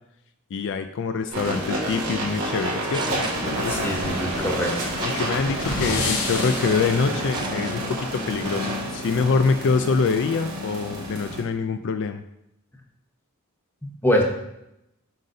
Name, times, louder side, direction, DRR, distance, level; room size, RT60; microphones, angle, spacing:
voice 1, 0.5-3.9 5.0-12.2, left 5 dB, 55° left, 9 dB, 0.3 m, -25 dB
sound 1, 1.3-11.4, right 1 dB, 85° right, 2.4 m, -29 dB
sound 2, 2.5-3.9 4.2-4.5 5.1-5.4 5.9-6.7 7.1-7.8 8.2-8.4, right 4 dB, 20° right, 0.4 m, -38 dB
sound 3, 3.1-7.0, left 3 dB, 80° left, 1.1 m, -31 dB
voice 2, 3.7-5.0 13.8-14.2, equal, 10° left, 1 dB, 0.8 m, -24 dB
7.7 x 5.2 x 2.7 m, 0.84 s
head